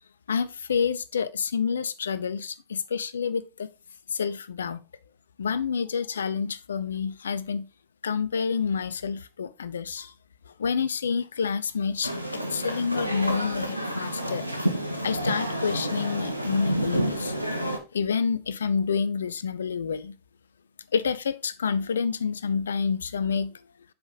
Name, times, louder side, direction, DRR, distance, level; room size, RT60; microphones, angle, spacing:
voice 1, 0.3-3.7 4.1-4.8 5.4-7.7 8.0-10.1 10.6-14.4 15.0-17.3 17.9-20.2 20.9-23.5, left 6 dB, 70° left, 0.5 m, -28 dB
sound 1, 12.0-17.8, right 1 dB, 90° left, 1.2 m, -29 dB
7.1 x 5.1 x 3.9 m
figure-of-eight pair, 90°, 0 cm